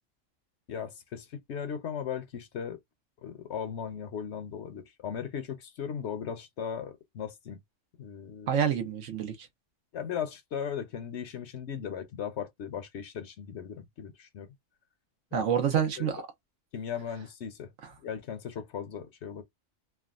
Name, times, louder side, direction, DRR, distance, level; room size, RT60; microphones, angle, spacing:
voice 1, 0.7-2.8 3.2-7.6 8.0-8.5 9.9-14.5 15.3-15.4 16.0-16.1 16.7-17.7 18.0-19.4, left 8 dB, 65° left, 0.9 m, -37 dB
voice 2, 8.5-9.5 15.3-16.3 17.8-17.9, right 8 dB, 70° right, 1.2 m, -28 dB
3.4 x 2.1 x 2.3 m
omnidirectional pair, 1.3 m